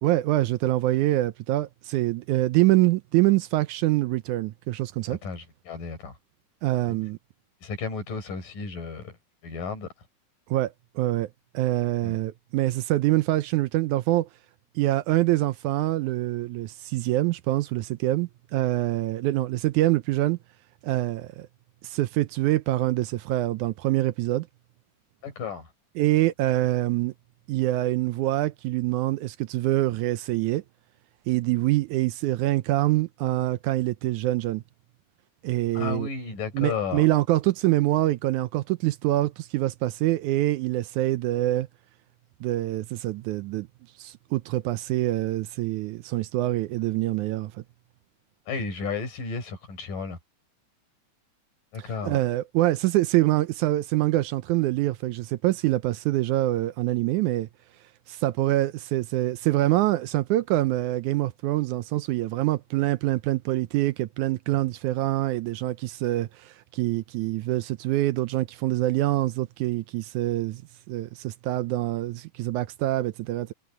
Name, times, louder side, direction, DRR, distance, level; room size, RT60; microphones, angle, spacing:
voice 1, 0.0-5.2 6.6-7.2 10.5-11.3 11.5-14.3 14.8-20.4 20.8-21.5 21.8-24.5 26.0-27.1 27.5-30.6 31.3-34.6 35.4-36.1 36.5-41.7 42.4-43.7 44.0-47.5 51.8-57.5 58.1-70.6 70.9-73.5, right 16 dB, 75° right, 1.9 m, -25 dB
voice 2, 5.1-6.1 6.9-7.0 7.6-9.2 9.4-9.9 12.0-12.2 25.2-25.7 35.7-37.1 48.5-50.2 51.7-52.2, left 5 dB, 85° left, 7.0 m, -33 dB
omnidirectional pair, 3.8 m